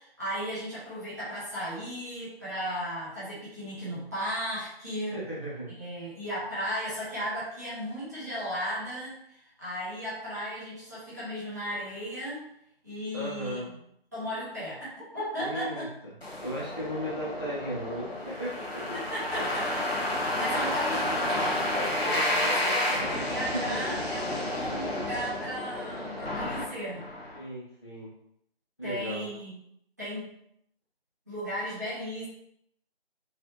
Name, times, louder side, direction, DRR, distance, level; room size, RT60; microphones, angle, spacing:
voice 1, 0.0-5.1 5.7-12.4 12.8-13.6 14.1-15.8 18.9-21.7 22.4-27.0 28.8-29.5 30.0-30.3 31.3-32.3, equal, 15° right, -11 dB, 0.8 m, -35 dB
voice 2, 5.1-5.7 13.1-13.7 15.4-16.1 16.4-19.0 20.7-20.8 21.9-23.8 27.3-28.1 28.8-29.3, equal, 25° left, -8 dB, 0.6 m, -36 dB
sound 1, 16.2-27.4, left 1 dB, 90° left, 0.9 m, -30 dB
3.2 x 2.7 x 2.8 m, 0.74 s
figure-of-eight pair, 160°, 30 cm